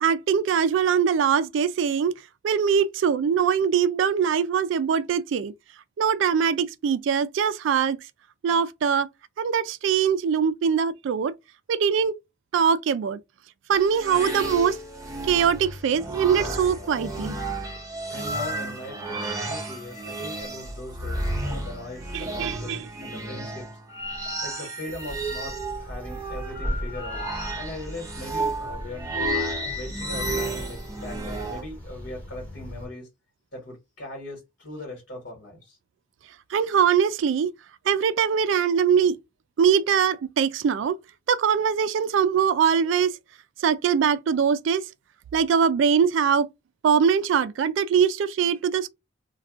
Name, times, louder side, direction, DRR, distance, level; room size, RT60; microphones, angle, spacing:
voice 1, 0.0-2.1 2.4-5.5 6.0-8.0 8.4-9.1 9.4-11.3 11.7-12.2 12.5-13.2 13.7-14.8 15.3-17.3 22.1-22.8 36.5-37.5 37.9-39.2 39.6-41.0 41.3-43.1 43.6-44.8 45.3-46.5 46.8-48.9, right 7 dB, 70° right, 0.3 m, -22 dB
sound 1, 13.7-31.6, right 1 dB, 15° right, 0.6 m, -32 dB
voice 2, 18.1-23.7 24.4-27.2 27.5-29.3 29.7-33.1 33.5-35.8, left 1 dB, 60° left, 1.4 m, -40 dB
sound 2, 25.0-32.9, equal, 10° left, 1.0 m, -38 dB
2.4 x 2.2 x 3.5 m
head